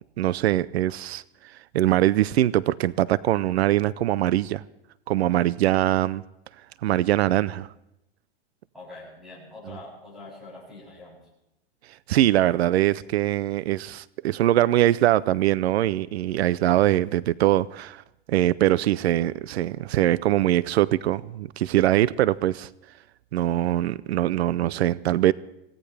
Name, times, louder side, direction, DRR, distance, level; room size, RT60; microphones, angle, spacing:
voice 1, 0.2-4.6 5.1-6.2 6.8-7.7 12.1-18.0 18.3-22.7 23.3-25.3, right 14 dB, 85° right, 0.5 m, -22 dB
voice 2, 8.7-11.2, left 2 dB, ahead, 8.0 m, -44 dB
25.5 x 16.5 x 3.4 m
supercardioid pair, 155°, 31 cm